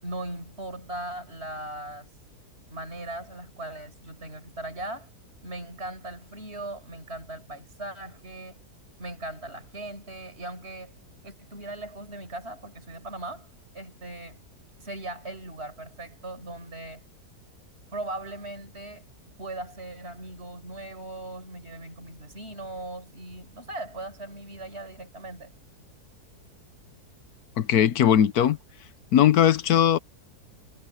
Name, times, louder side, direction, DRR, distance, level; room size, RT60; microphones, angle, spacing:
voice 1, 0.0-2.1 2.7-5.1 5.4-8.6 9.0-10.9 11.2-14.4 14.8-17.0 17.9-19.0 19.4-25.5, right 2 dB, 40° right, 6.2 m, -39 dB
voice 2, 27.6-28.6 29.1-30.0, left 10 dB, 75° left, 1.3 m, -19 dB
omnidirectional pair, 1.7 m